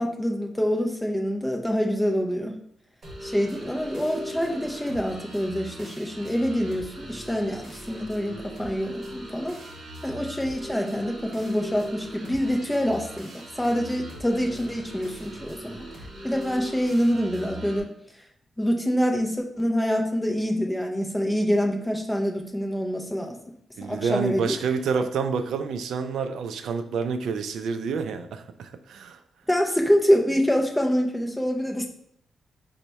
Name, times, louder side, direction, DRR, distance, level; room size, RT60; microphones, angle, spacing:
voice 1, 0.0-2.6 3.2-9.6 10.0-15.9 16.2-17.9 18.6-23.4 23.9-24.6 29.5-31.9, equal, 5° left, 1 dB, 0.4 m, -26 dB
sound 1, 3.0-17.8, equal, 30° right, 1.0 m, -40 dB
voice 2, 23.8-29.2, right 5 dB, 80° right, 9 dB, 0.3 m, -28 dB
4.0 x 2.1 x 4.5 m, 0.71 s
wide cardioid pair, 180°, 0 cm